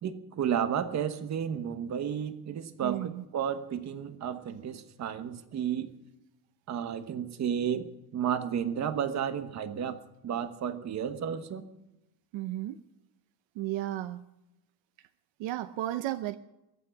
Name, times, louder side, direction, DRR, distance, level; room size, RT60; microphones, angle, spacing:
voice 1, 0.0-5.9 6.7-10.0 10.2-11.6, right 8 dB, 35° right, 9 dB, 1.2 m, -32 dB
voice 2, 2.8-3.2 6.9-7.0 12.3-12.8 13.5-14.2 15.4-16.4, right 14 dB, 65° right, 11 dB, 0.8 m, -34 dB
22.5 x 8.8 x 7.0 m, 0.93 s
cardioid pair, 175°, 49 cm